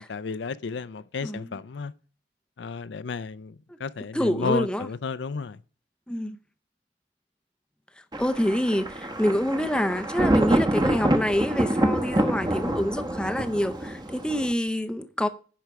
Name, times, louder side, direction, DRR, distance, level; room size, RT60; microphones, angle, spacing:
voice 1, 0.0-1.9 2.6-5.6, left 4 dB, 70° left, 0.5 m, -32 dB
voice 2, 1.2-1.6 4.1-4.9 6.1-6.4 8.2-15.3, equal, 5° left, 0.5 m, -27 dB
Thunder, 8.1-14.5, right 1 dB, 20° right, 0.9 m, -26 dB
10.5 x 6.2 x 4.7 m
head